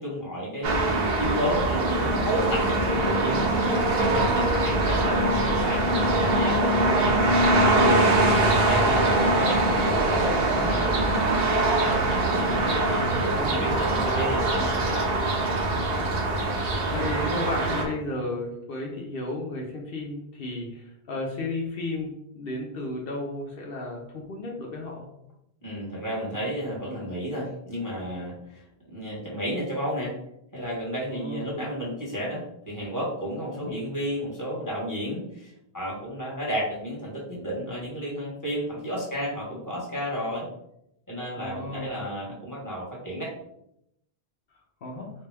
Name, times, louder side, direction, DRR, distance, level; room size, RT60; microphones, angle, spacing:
voice 1, 0.0-3.5 3.8-7.2 8.1-14.8 25.6-28.6 28.9-30.1 30.5-40.5 41.1-43.3, equal, 20° left, -5 dB, 1.3 m, -32 dB
sound 1, 0.6-17.8, right 2 dB, 70° right, 0.9 m, -23 dB
voice 2, 8.6-9.0 13.3-13.8 16.9-25.1 31.1-31.5 33.5-33.7 41.4-41.9 44.8-45.1, left 2 dB, 70° left, -1 dB, 0.9 m, -34 dB
4.3 x 2.2 x 3.3 m, 0.79 s
omnidirectional pair, 1.0 m